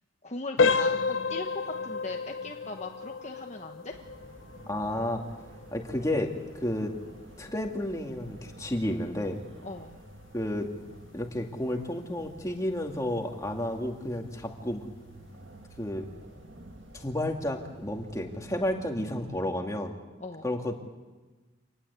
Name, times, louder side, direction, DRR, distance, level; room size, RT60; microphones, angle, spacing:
voice 1, 0.2-1.5 1.8-4.0 9.6-9.9 20.2-20.5, left 2 dB, 35° left, 2 dB, 1.3 m, -39 dB
sound 1, 0.6-11.2 11.6-11.8 12.4-12.5 13.0-13.2, left 4 dB, 80° left, 1.1 m, -32 dB
sound 2, 3.9-19.4, right 1 dB, 65° right, 2.4 m, -50 dB
voice 2, 4.7-5.2 5.7-6.3 6.6-6.9 7.4-9.4 10.3-10.7 11.1-14.9 15.8-16.1 16.9-20.0 20.4-20.7, left 1 dB, 15° left, 2 dB, 2.4 m, -31 dB
27.0 x 19.5 x 8.4 m, 1.2 s
head